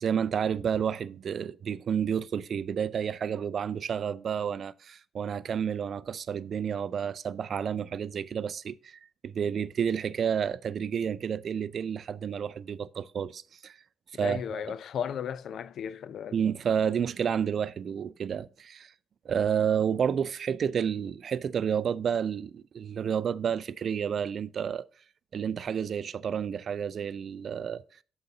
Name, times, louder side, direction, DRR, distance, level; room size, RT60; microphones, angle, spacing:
voice 1, 0.0-13.8 14.2-14.4 16.3-18.9 19.3-24.9 25.3-27.8, right 7 dB, 55° right, 0.4 m, -30 dB
voice 2, 14.1-16.4, left 8 dB, 65° left, 0.4 m, -35 dB
8.0 x 3.9 x 5.4 m
cardioid pair, 90°, 0 cm